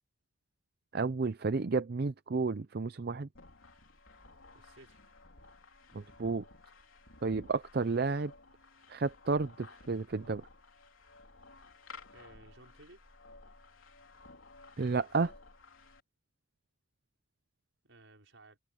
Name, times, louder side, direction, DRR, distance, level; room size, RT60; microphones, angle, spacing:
voice 1, 0.9-3.3 5.9-6.4 7.2-8.3 8.9-10.5 14.8-15.3, right 4 dB, 50° right, 0.5 m, -31 dB
sound 1, 3.3-16.0, left 3 dB, 90° left, 3.9 m, -56 dB
voice 2, 4.5-5.1 12.0-13.0 17.8-18.6, right 2 dB, 75° right, 5.0 m, -58 dB
head